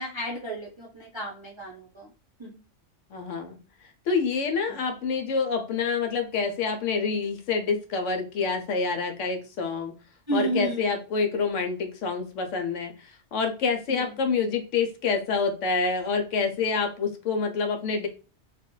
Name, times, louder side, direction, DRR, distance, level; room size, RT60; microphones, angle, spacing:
voice 1, 0.0-2.1 2.4-2.6 4.7-4.8 10.3-10.9 13.9-14.1, right 1 dB, 30° right, -4 dB, 0.6 m, -32 dB
voice 2, 3.1-3.6 4.1-9.9 10.3-18.1, left 5 dB, 80° left, 5 dB, 1.0 m, -27 dB
2.5 x 2.2 x 3.6 m, 0.34 s
omnidirectional pair, 1.3 m